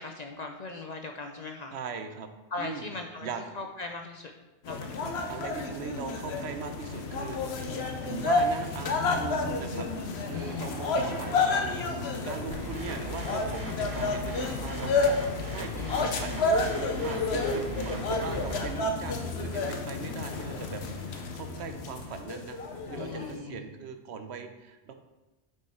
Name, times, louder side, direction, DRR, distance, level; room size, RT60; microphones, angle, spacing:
voice 1, 0.0-1.7 2.5-3.3 3.5-4.3 4.7-5.2 7.7-7.9 10.3-10.7 15.8-16.1 23.0-23.6, left 3 dB, 50° left, 4 dB, 0.5 m, -39 dB
voice 2, 1.7-2.3 2.6-2.9 3.2-3.4 5.3-7.7 8.0-9.9 10.2-15.1 15.5-16.5 16.9-22.6 22.9-24.9, right 5 dB, 75° right, 7 dB, 0.9 m, -40 dB
sound 1, 4.6-23.4, left 3 dB, 70° left, 1.0 m, -30 dB
Laughter / Crowd, 10.0-14.4, equal, 35° left, 1.4 m, -50 dB
sound 2, 12.5-18.7, equal, 45° right, 1.7 m, -39 dB
6.5 x 5.5 x 4.2 m, 1.1 s
omnidirectional pair, 1.1 m